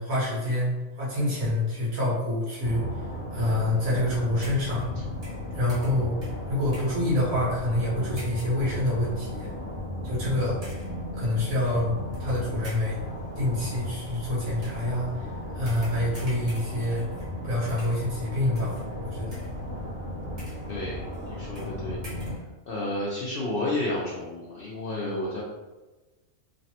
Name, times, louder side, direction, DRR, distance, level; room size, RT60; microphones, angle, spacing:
voice 1, 0.0-4.9 5.5-6.1 6.5-9.5 10.0-10.6 11.1-13.0 13.4-17.1 17.4-19.4, left 1 dB, 75° right, -7 dB, 1.5 m, -27 dB
sound 1, 2.6-22.4, left 1 dB, 50° right, 1.1 m, -35 dB
sound 2, 4.4-5.0 5.2-7.0 8.2-8.6 9.3-9.5 10.6-11.0 12.1-12.3 12.6-13.1 14.6-14.9 15.7-17.4 17.7-18.2 18.6-18.9 19.3-19.8 20.2-20.7 21.1-21.2 21.6-21.8 22.0-22.4, right 1 dB, 30° right, 0.9 m, -48 dB
voice 2, 20.7-22.0 22.7-25.4, left 1 dB, 65° left, -6 dB, 0.5 m, -31 dB
3.3 x 2.1 x 2.7 m, 1.2 s
omnidirectional pair, 1.5 m